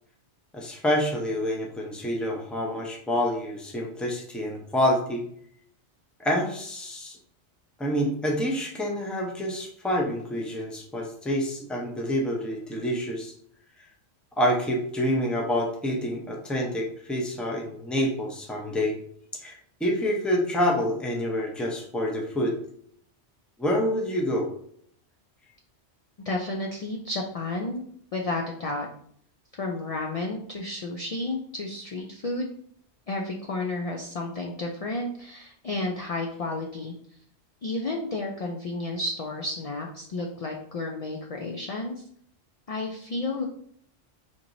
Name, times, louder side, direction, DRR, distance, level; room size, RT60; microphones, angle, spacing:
voice 1, 0.5-5.2 6.2-7.2 7.8-13.3 14.4-19.0 19.4-22.6 23.6-24.5, equal, ahead, 0 dB, 0.4 m, -27 dB
voice 2, 26.2-27.8 28.1-28.9 29.6-32.5 33.1-36.9 37.6-42.0 42.7-43.4, left 2 dB, 65° left, 0 dB, 0.3 m, -31 dB
4.4 x 2.9 x 2.6 m, 0.65 s
omnidirectional pair, 1.2 m